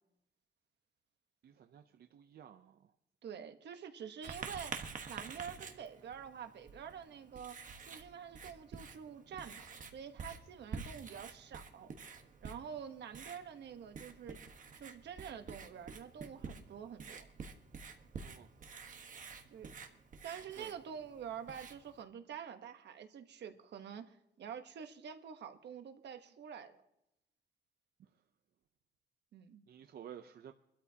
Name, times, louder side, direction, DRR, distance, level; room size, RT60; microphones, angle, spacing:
voice 1, 1.4-2.9 18.2-18.5 20.6-20.7 28.0-28.1 29.7-30.5, right 9 dB, 65° right, 7 dB, 0.6 m, -53 dB
voice 2, 3.2-4.7 5.1-7.6 7.8-9.7 9.9-11.9 12.4-14.4 14.8-17.2 19.5-19.7 20.2-26.7 29.3-29.6, right 8 dB, 80° right, 7 dB, 1.1 m, -47 dB
Writing, 4.2-22.0, right 5 dB, 50° right, 1.3 m, -49 dB
25.0 x 12.5 x 2.8 m, 0.85 s
wide cardioid pair, 150°, 17 cm